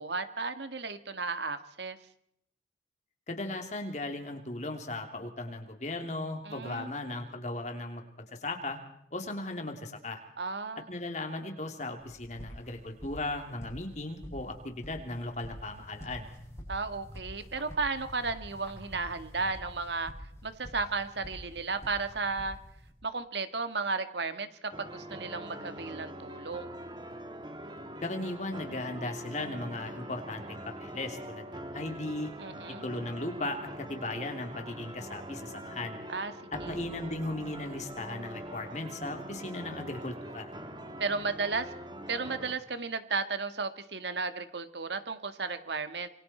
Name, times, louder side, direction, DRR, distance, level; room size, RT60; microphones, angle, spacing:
voice 1, 0.0-2.0 6.4-6.9 10.4-10.9 16.7-20.1 20.4-22.6 23.0-26.7 32.4-32.8 36.1-36.3 36.6-36.8 41.0-41.7 42.1-46.1, right 4 dB, 75° right, 10 dB, 1.7 m, -34 dB
voice 2, 3.3-8.0 8.3-8.8 9.1-10.2 10.9-16.2 28.0-32.3 32.8-36.0 36.5-40.5, left 2 dB, 40° left, 4 dB, 3.1 m, -37 dB
sound 1, 12.0-22.9, equal, 15° left, 7.5 m, -47 dB
sound 2, 24.7-42.6, right 1 dB, 25° right, 2.1 m, -43 dB
26.5 x 24.5 x 4.4 m, 0.72 s
head